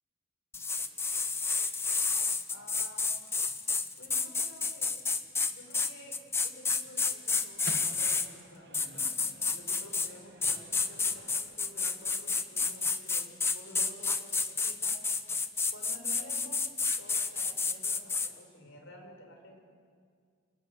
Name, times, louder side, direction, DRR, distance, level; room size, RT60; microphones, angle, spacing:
sound 1, 0.5-8.3 8.7-10.1 10.4-18.3, left 4 dB, 10° left, 0.8 m, -30 dB
voice 1, 2.5-3.2 4.0-5.0 5.4-6.2 6.4-9.1 9.5-15.0 15.7-16.6 17.0-19.6, left 1 dB, 70° left, 3 dB, 5.4 m, -52 dB
Microwave oven, 7.2-13.2, right 2 dB, 55° right, 2.2 m, -51 dB
28.0 x 20.5 x 8.0 m, 2.1 s
head